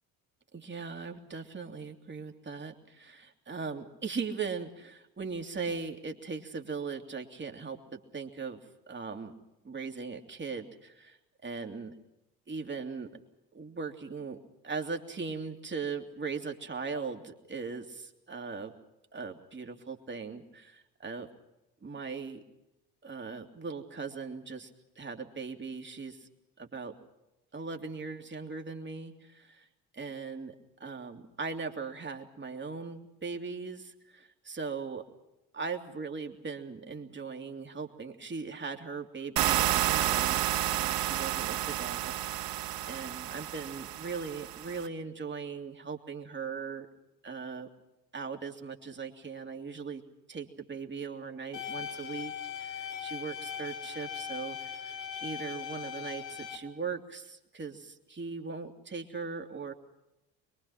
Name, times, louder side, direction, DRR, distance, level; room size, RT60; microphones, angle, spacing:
voice 1, 0.5-8.6 8.9-9.3 9.6-11.9 12.5-13.1 13.5-14.4 14.6-18.7 19.1-21.3 21.8-22.4 23.0-24.7 24.9-26.3 26.6-27.0 27.5-29.7 29.9-30.5 30.8-35.0 35.5-40.5 40.7-46.9 47.2-47.7 48.1-50.0 50.3-54.9 55.2-59.7, right 5 dB, 20° right, 3 dB, 3.2 m, -39 dB
sound 1, 39.4-44.9, right 13 dB, 45° right, 1.1 m, -30 dB
sound 2, 51.5-56.6, left 8 dB, 80° left, 3.0 m, -39 dB
25.5 x 22.5 x 5.9 m, 0.91 s
figure-of-eight pair, 60°, 49 cm